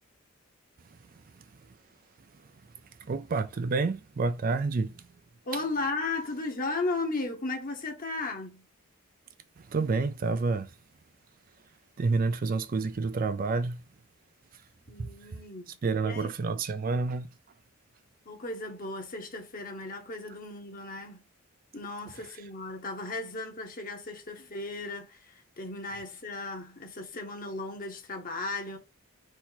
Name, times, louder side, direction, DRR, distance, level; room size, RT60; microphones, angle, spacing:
voice 1, 3.0-5.1 9.6-10.7 12.0-13.8 15.0-15.1 15.7-17.3, right 4 dB, 40° right, 0.4 m, -29 dB
voice 2, 5.4-8.6 14.9-16.3 18.3-21.2 21.7-28.8, left 3 dB, 40° left, 1.1 m, -35 dB
4.3 x 2.8 x 3.9 m
head